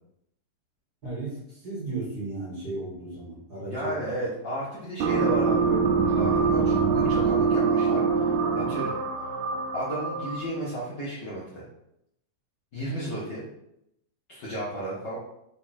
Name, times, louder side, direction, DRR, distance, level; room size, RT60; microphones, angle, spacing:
voice 1, 1.0-4.1, right 2 dB, 35° right, -6 dB, 2.0 m, -35 dB
voice 2, 3.7-5.8 6.0-9.0 9.7-11.6 12.7-13.4 14.3-15.2, right 1 dB, 85° left, -8 dB, 0.9 m, -33 dB
sound 1, 5.0-10.6, right 5 dB, 85° right, 2.6 m, -24 dB
5.9 x 4.4 x 4.4 m, 0.80 s
omnidirectional pair, 4.3 m